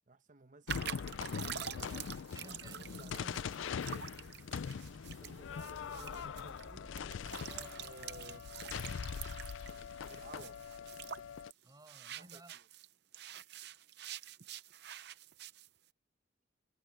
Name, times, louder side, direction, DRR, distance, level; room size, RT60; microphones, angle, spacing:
voice 1, 0.1-1.3 2.4-4.1 5.1-6.9 7.8-8.5 10.1-10.6 12.1-12.6, right 2 dB, 45° right, 1.0 m, -57 dB
sound 1, 0.7-11.5, left 7 dB, 85° left, 0.4 m, -42 dB
sound 2, 0.7-12.9 13.1-15.7, right 10 dB, 60° right, 0.7 m, -47 dB
voice 2, 1.7-4.0 7.4-7.8 11.6-12.6, right 1 dB, 20° right, 7.5 m, -57 dB
sound 3, 2.7-9.0, equal, 35° left, 7.0 m, -58 dB
head